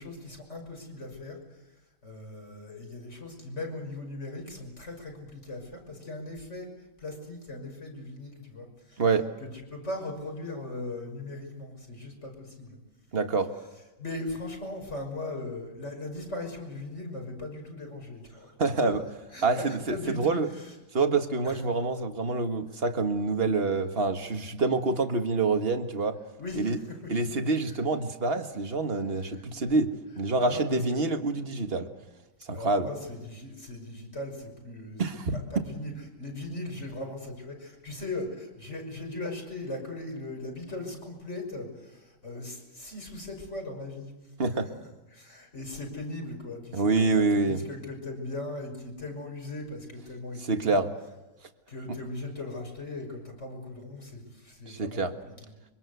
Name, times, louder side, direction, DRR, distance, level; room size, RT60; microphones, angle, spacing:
voice 1, 0.0-1.4 2.0-6.7 7.0-9.0 9.4-12.8 14.0-18.5 18.8-18.9 19.3-20.7 21.4-21.7 26.4-27.3 27.7-27.8 29.1-29.4 30.4-31.1 32.5-35.0 35.3-44.1 44.6-50.8 51.7-55.0 55.4-55.5, left 2 dB, 35° left, 2 dB, 6.2 m, -39 dB
voice 2, 13.1-13.5 18.6-19.0 19.4-20.5 20.9-26.2 26.6-26.8 27.1-31.9 32.5-32.9 35.0-35.6 44.4-44.7 46.7-47.6 50.5-50.9 54.7-55.2, right 3 dB, 30° right, 7 dB, 1.7 m, -26 dB
25.0 x 24.5 x 8.2 m, 1.0 s
omnidirectional pair, 2.1 m